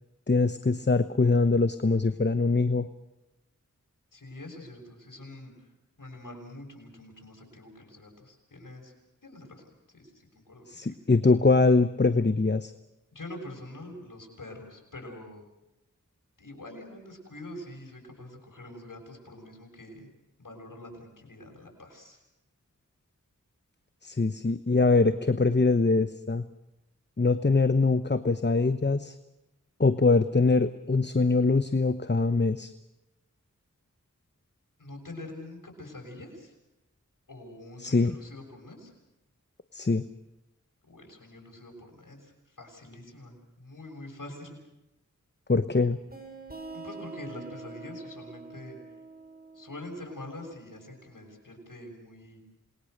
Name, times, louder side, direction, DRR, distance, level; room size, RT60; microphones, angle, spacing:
voice 1, 0.3-2.9 10.7-12.7 24.0-26.4 27.2-29.2 29.8-32.7 37.8-38.2 39.7-40.0 45.5-46.0, left 3 dB, 35° left, 11 dB, 1.0 m, -23 dB
voice 2, 4.1-5.7 6.0-8.9 9.2-11.0 13.1-15.5 16.4-20.1 20.4-22.2 34.8-36.5 37.3-38.9 40.8-44.6 46.7-48.8 49.5-52.4, left 1 dB, 85° left, 1 dB, 7.0 m, -45 dB
sound 1, 46.1-51.5, right 3 dB, 30° right, 6.9 m, -46 dB
28.0 x 21.5 x 6.7 m, 0.92 s
wide cardioid pair, 45°, 32 cm